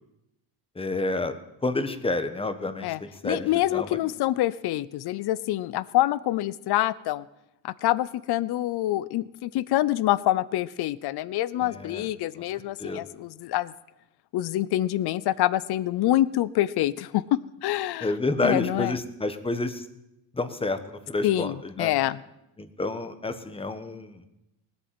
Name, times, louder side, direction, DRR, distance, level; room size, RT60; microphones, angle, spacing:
voice 1, 0.7-4.0 11.6-12.1 12.3-12.4 12.8-13.1 18.0-19.9 20.3-21.9 22.6-24.3, left 2 dB, 10° left, 9 dB, 1.3 m, -29 dB
voice 2, 2.8-7.3 7.6-13.7 14.3-18.1 18.4-18.9 21.2-22.2, left 14 dB, 60° left, 19 dB, 0.7 m, -26 dB
18.5 x 8.5 x 7.7 m, 0.90 s
cardioid pair, 105°, 44 cm